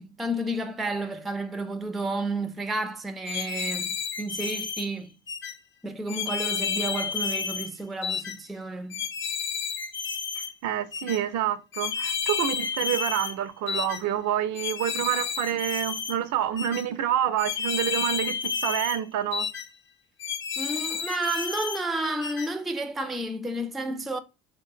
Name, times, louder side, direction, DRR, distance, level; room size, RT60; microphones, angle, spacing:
voice 1, 0.0-5.2 5.8-9.0 20.6-24.2, right 1 dB, ahead, 0.4 m, -31 dB
sound 1, 3.3-4.9 5.3-5.5 6.1-7.7 8.0-8.4 8.9-10.5 10.9-11.2 11.7-13.3 13.7-14.0 14.6-16.2 16.6-16.8 17.4-19.0 19.3-19.7 20.2-21.8 22.2-22.5, left 6 dB, 35° left, 0.7 m, -31 dB
voice 2, 10.4-19.5, right 10 dB, 60° right, 0.5 m, -28 dB
3.2 x 2.9 x 2.7 m
hypercardioid pair, 55°, 34 cm